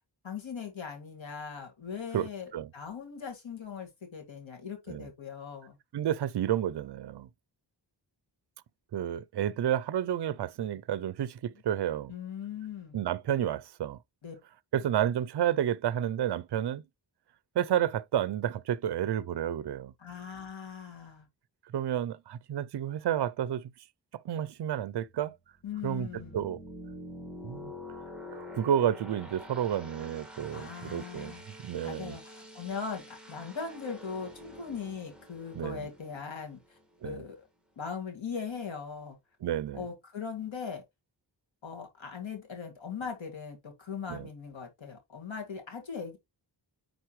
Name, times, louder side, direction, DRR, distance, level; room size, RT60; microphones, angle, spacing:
voice 1, 0.2-5.8 12.1-13.1 14.2-14.3 20.0-21.3 25.6-26.4 30.5-31.4 31.8-36.8 37.0-37.5 37.8-39.2 39.7-40.8 41.6-46.2, left 6 dB, 90° left, 2.4 m, -40 dB
voice 2, 2.1-2.7 4.9-5.1 5.9-7.3 8.9-12.1 12.9-14.0 14.7-16.8 17.6-19.9 21.7-23.6 24.2-25.4 25.8-26.1 26.3-26.6 27.4-27.7 28.3-31.3 31.6-32.2 35.6-35.8 37.0-37.2 39.4-39.8 44.1-44.3, right 10 dB, 65° right, 0.5 m, -30 dB
sound 1, 24.7-37.3, left 1 dB, ahead, 1.7 m, -47 dB
9.4 x 3.9 x 3.1 m
wide cardioid pair, 120°, 45 cm